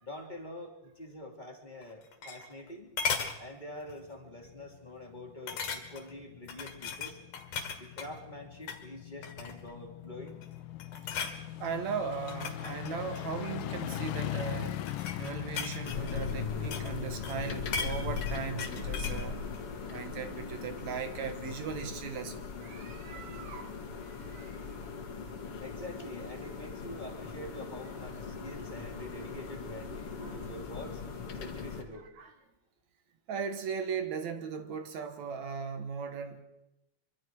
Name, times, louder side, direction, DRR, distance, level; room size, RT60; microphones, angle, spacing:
voice 1, 0.0-2.9 3.4-7.2 7.8-10.4 25.6-31.0 31.4-32.1, left 1 dB, 15° left, 2.6 m, -46 dB
sound 1, 1.8-2.7 3.0-3.4 3.9-4.1 4.4-4.5 5.5-6.1 6.5-8.1 8.6-8.8 9.2-9.8 10.3-10.5 10.8-11.4 12.1-13.7 14.5-17.0 17.2-19.3 19.5-19.6, left 6 dB, 70° left, 3.2 m, -37 dB
sound 2, 3.6-20.2 20.5-20.6, left 12 dB, 90° left, 2.7 m, -41 dB
voice 2, 11.6-14.8 15.2-19.4 19.9-23.7 24.1-24.6 30.2-30.5 32.2-32.3 33.3-36.4, right 6 dB, 65° right, 2.5 m, -38 dB
sound 3, 15.8-31.8, left 5 dB, 50° left, 2.5 m, -40 dB
24.5 x 24.5 x 4.7 m
omnidirectional pair, 3.7 m